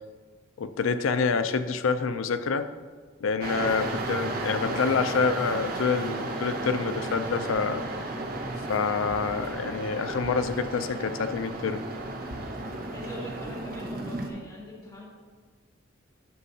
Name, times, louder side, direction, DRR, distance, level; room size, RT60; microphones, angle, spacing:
voice 1, 0.6-2.7 3.2-7.8 8.7-11.8, left 5 dB, 85° left, 11 dB, 0.5 m, -27 dB
sound 1, 3.4-14.3, right 2 dB, 45° right, 0.8 m, -34 dB
voice 2, 12.9-15.0, equal, 15° left, -6 dB, 2.2 m, -41 dB
11.5 x 6.3 x 2.8 m, 1.5 s
head